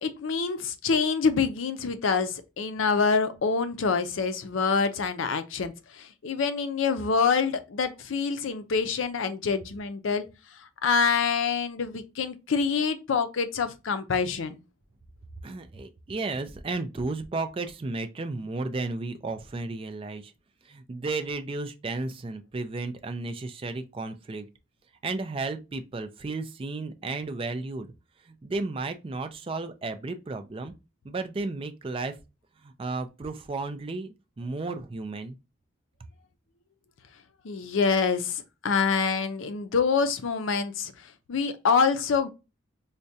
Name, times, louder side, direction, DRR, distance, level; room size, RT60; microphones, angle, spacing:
voice 1, 0.0-10.3 10.8-14.6 37.4-42.3, left 5 dB, 80° left, 0.5 m, -26 dB
voice 2, 15.4-20.3 20.6-24.5 25.0-27.9 28.2-30.7 31.0-32.2 32.6-35.4, right 3 dB, 25° right, 0.3 m, -33 dB
4.6 x 2.2 x 2.6 m
head